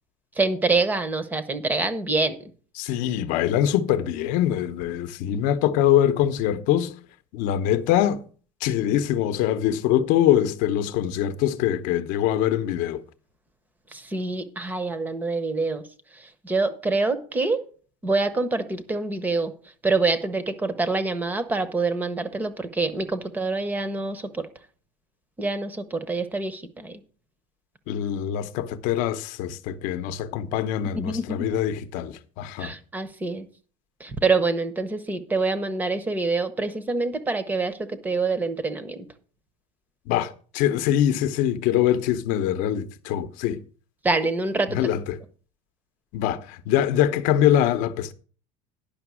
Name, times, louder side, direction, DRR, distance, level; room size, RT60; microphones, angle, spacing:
voice 1, 0.4-2.4 13.9-15.8 16.4-17.6 18.0-19.5 19.8-24.4 25.4-27.0 30.8-31.5 32.6-33.5 34.0-39.1 44.0-44.8, right 3 dB, 10° right, 0.7 m, -26 dB
voice 2, 2.8-6.9 7.3-8.2 8.6-13.0 27.9-32.7 40.1-43.6 44.7-45.2 46.1-48.1, left 11 dB, 50° left, 0.8 m, -23 dB
10.5 x 6.0 x 6.1 m
cardioid pair, 175°, 17 cm